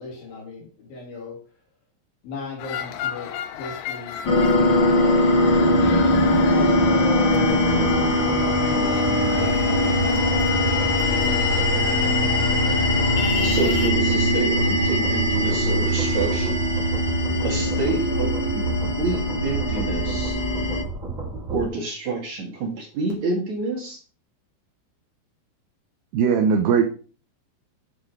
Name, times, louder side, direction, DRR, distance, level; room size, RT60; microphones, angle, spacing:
voice 1, 0.0-1.4 2.2-8.1 8.6-10.2 10.6-12.4 17.6-18.3, left 4 dB, 50° left, -1 dB, 4.3 m, -38 dB
sound 1, 2.6-13.9, left 10 dB, 80° left, 2.3 m, -33 dB
sound 2, 4.2-20.8, left 1 dB, 65° left, 1.1 m, -21 dB
sound 3, 5.5-21.6, right 3 dB, 20° right, 2.3 m, -32 dB
voice 2, 13.4-16.6 17.4-18.7 19.0-20.4 21.5-24.0, right 3 dB, 50° right, 0 dB, 2.4 m, -28 dB
voice 3, 26.1-26.9, right 6 dB, 75° right, 3 dB, 2.6 m, -19 dB
11.0 x 6.2 x 4.8 m, 0.39 s
omnidirectional pair, 5.7 m